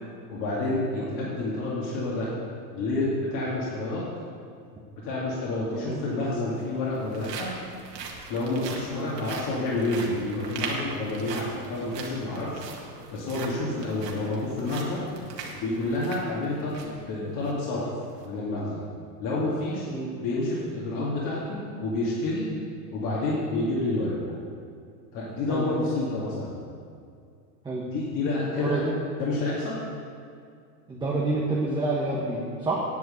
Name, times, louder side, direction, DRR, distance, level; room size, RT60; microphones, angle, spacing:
voice 1, 0.3-2.3 2.7-4.0 5.0-7.5 8.3-12.6 13.1-15.0 15.5-17.9 18.2-18.8 19.2-19.9 20.2-22.4 22.9-24.1 25.1-26.6 27.9-28.8 29.2-29.8, left 2 dB, 40° left, -6 dB, 2.4 m, -29 dB
voice 2, 1.0-1.3 5.7-6.0 8.9-9.1 19.9-20.1 25.5-25.7 27.6-27.9 28.5-28.9 30.9-32.8, right 2 dB, 10° right, -4 dB, 1.2 m, -29 dB
sound 1, 5.4-5.5 6.4-17.0 17.4-17.5 18.0-18.3, right 5 dB, 85° right, 2.2 m, -40 dB
9.6 x 8.0 x 7.9 m, 2.3 s
supercardioid pair, 140°, 48 cm